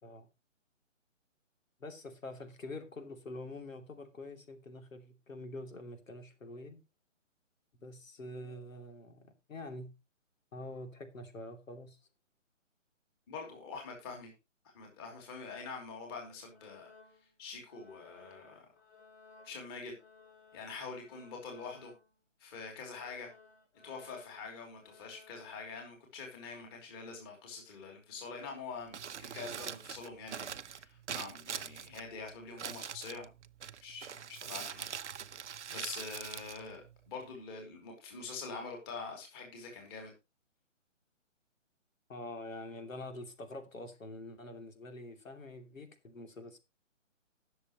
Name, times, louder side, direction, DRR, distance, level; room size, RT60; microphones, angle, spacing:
voice 1, 1.8-6.8 7.8-9.9 10.5-12.0 42.1-46.6, left 2 dB, 85° left, 2.9 m, -46 dB
voice 2, 13.3-14.3 14.7-16.9 17.4-18.7 19.4-19.9 20.5-21.9 22.4-23.3 23.8-33.3 33.8-34.9 35.7-40.1, left 4 dB, 20° left, 2.9 m, -45 dB
sound 1, 16.5-17.4 17.7-22.2 22.5-25.6, left 4 dB, 55° left, 2.8 m, -60 dB
Crumpling crinkling, 28.8-37.4, right 8 dB, 60° right, 0.8 m, -44 dB
19.5 x 6.9 x 3.0 m
hypercardioid pair, 165°, 39 cm